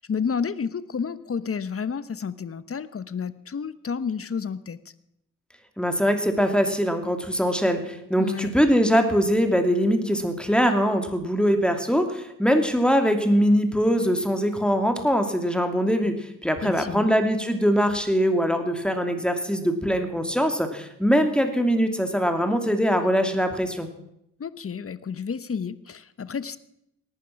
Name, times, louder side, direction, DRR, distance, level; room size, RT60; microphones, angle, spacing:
voice 1, 0.0-4.8 8.2-8.5 16.6-17.1 24.4-26.6, left 6 dB, 45° left, 16 dB, 1.0 m, -30 dB
voice 2, 5.8-16.1 16.4-23.9, equal, 5° left, 6 dB, 2.7 m, -22 dB
18.5 x 11.5 x 5.9 m, 0.78 s
cardioid pair, 55°, 32 cm